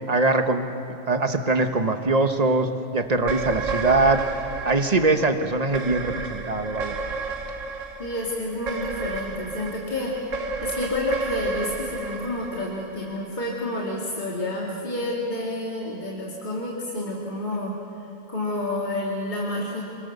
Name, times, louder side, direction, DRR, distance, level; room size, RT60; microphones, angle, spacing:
voice 1, 0.1-0.7 1.1-4.2 4.6-7.0, right 3 dB, 35° right, 7 dB, 1.4 m, -22 dB
sound 1, 3.3-13.6, right 4 dB, 85° right, 1.8 m, -32 dB
voice 2, 8.0-10.3 10.6-17.8 18.3-19.8, left 1 dB, 40° left, -4 dB, 2.8 m, -29 dB
26.0 x 24.5 x 6.8 m, 2.7 s
omnidirectional pair, 1.3 m